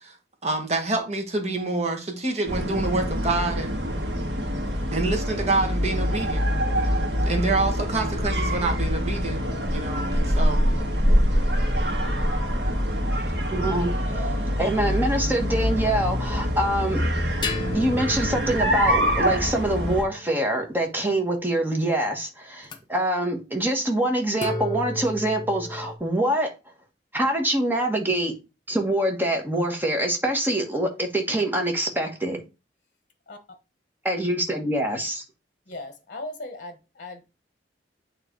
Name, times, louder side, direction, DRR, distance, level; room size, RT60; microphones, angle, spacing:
voice 1, 0.4-3.8 4.9-6.4 7.2-9.4 9.7-10.7, right 3 dB, 40° right, 1.5 m, -27 dB
sound 1, 2.5-20.0, equal, 75° right, 1.8 m, -25 dB
voice 2, 13.5-14.3 14.6-17.0 17.7-26.5 27.1-28.3 28.7-32.4 34.0-35.2, right 1 dB, 10° right, 1.4 m, -25 dB
sound 2, 14.6-15.8 17.4-21.2 22.6-22.8 24.4-26.0, left 2 dB, 25° left, 0.9 m, -35 dB
voice 3, 35.7-37.3, left 2 dB, 45° left, 1.1 m, -38 dB
8.8 x 3.2 x 4.6 m
head